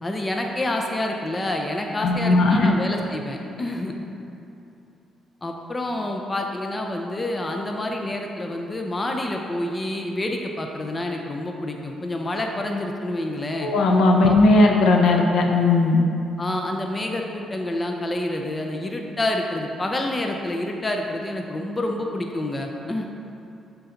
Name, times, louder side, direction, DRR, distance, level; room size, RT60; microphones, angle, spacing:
voice 1, 0.0-3.9 5.4-13.7 14.2-14.4 16.4-23.0, left 1 dB, 25° left, 2 dB, 0.6 m, -28 dB
voice 2, 2.0-2.7 13.6-16.0, left 2 dB, 70° left, 2 dB, 0.6 m, -17 dB
6.7 x 4.0 x 3.9 m, 2.8 s
cardioid pair, 90°, 0 cm